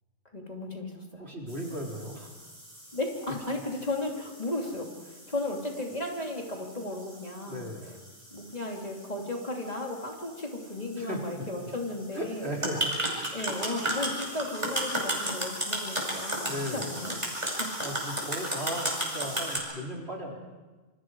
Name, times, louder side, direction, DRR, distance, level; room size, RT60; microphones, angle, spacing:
voice 1, 0.3-1.3 2.9-8.0 8.3-12.5 13.3-17.2 17.4-17.8, left 2 dB, 35° left, 0 dB, 3.2 m, -35 dB
voice 2, 1.2-2.3 7.5-7.9 11.0-11.5 12.1-12.9 16.4-16.9 17.8-20.3, equal, 60° right, -1 dB, 4.0 m, -36 dB
sound 1, 1.5-19.6, right 1 dB, 25° right, 5.7 m, -36 dB
27.5 x 26.0 x 4.8 m, 1.2 s
omnidirectional pair, 1.2 m